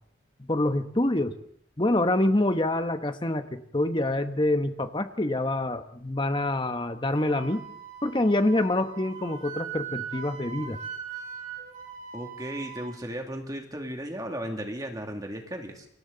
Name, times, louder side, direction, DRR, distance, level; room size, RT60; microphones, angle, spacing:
voice 1, 0.5-1.3 1.8-7.6 8.0-10.8, left 1 dB, 25° left, 8 dB, 1.1 m, -26 dB
Wind instrument woodwind instrument, 7.1-12.9, right 7 dB, 40° right, 5.6 m, -40 dB
voice 2, 12.1-15.9, equal, 20° right, 2 dB, 2.4 m, -35 dB
28.5 x 23.0 x 4.0 m, 0.66 s
head